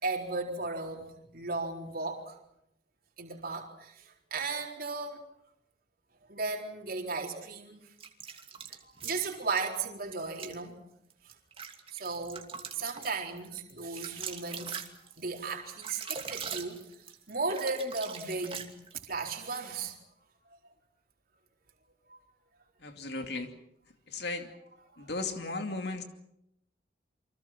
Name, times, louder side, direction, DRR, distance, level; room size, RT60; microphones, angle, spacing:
voice 1, 0.0-1.1 1.3-2.4 3.2-4.1 4.3-5.2 6.3-7.9 8.7-10.8 11.9-12.4 12.7-16.8 17.3-18.6 19.1-20.0 22.1-22.2 24.9-25.1, right 3 dB, 55° right, 1 dB, 4.1 m, -35 dB
sound 1, 8.0-9.6 10.3-10.6 11.1-19.1, right 6 dB, 30° right, 2.7 m, -42 dB
voice 2, 22.8-23.5 24.1-24.5 25.0-26.0, left 3 dB, 60° left, 5 dB, 2.6 m, -36 dB
29.0 x 25.0 x 6.0 m, 0.79 s
head